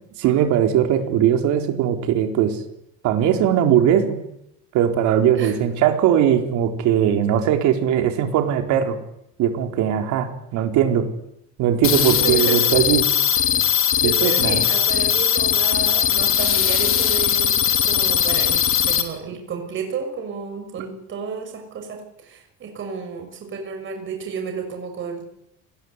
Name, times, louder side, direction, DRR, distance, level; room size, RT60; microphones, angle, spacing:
voice 1, 0.2-2.6 3.0-4.2 4.7-9.0 9.4-11.1 11.6-13.0 14.0-14.7, right 9 dB, 70° right, 5 dB, 4.1 m, -19 dB
sound 1, 11.8-19.0, left 9 dB, 45° left, 3.2 m, -19 dB
voice 2, 12.2-12.6 14.0-25.2, right 6 dB, 40° right, 4 dB, 6.2 m, -31 dB
28.0 x 20.5 x 8.2 m, 0.80 s
cardioid pair, 150°, 31 cm